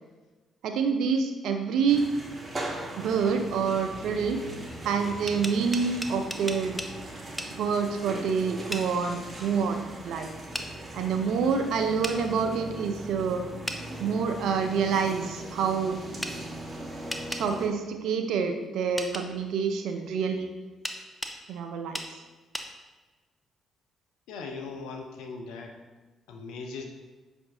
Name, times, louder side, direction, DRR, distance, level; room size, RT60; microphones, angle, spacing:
voice 1, 0.6-2.0 3.0-4.4 4.8-6.8 7.5-10.3 10.9-13.4 14.0-16.0 17.3-20.5 21.5-22.2, right 6 dB, 65° right, 5 dB, 0.3 m, -27 dB
sound 1, 1.9-17.7, right 1 dB, 35° right, 0.8 m, -40 dB
sound 2, 5.3-6.9 7.4-7.5 8.7-8.9 10.5-10.7 12.0-12.2 13.7-13.8 16.2-16.4 17.1-17.5 19.0-19.3 20.8-21.4 21.9-22.1 22.5-22.7, equal, 5° left, 0.4 m, -34 dB
voice 2, 24.3-25.8 26.3-26.8, left 4 dB, 70° left, 3 dB, 0.4 m, -39 dB
5.5 x 2.6 x 2.4 m, 1.2 s
hypercardioid pair, 45°, 0 cm